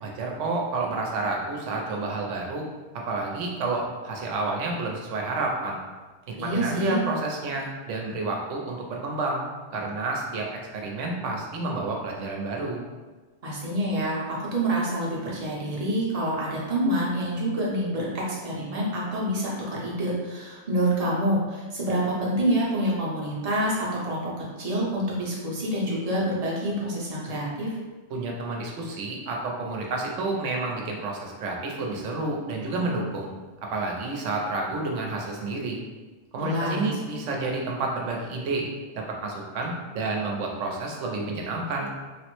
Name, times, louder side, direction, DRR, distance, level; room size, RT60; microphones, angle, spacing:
voice 1, 0.0-2.6 3.1-5.8 6.3-9.4 9.7-12.8 28.1-33.3 33.7-35.8 36.3-38.6 38.9-41.9, right 3 dB, 85° right, 0 dB, 0.9 m, -30 dB
voice 2, 6.4-7.0 13.4-27.7 36.4-36.8, right 1 dB, 40° right, -5 dB, 0.7 m, -27 dB
3.3 x 2.0 x 3.0 m, 1.3 s
omnidirectional pair, 1.2 m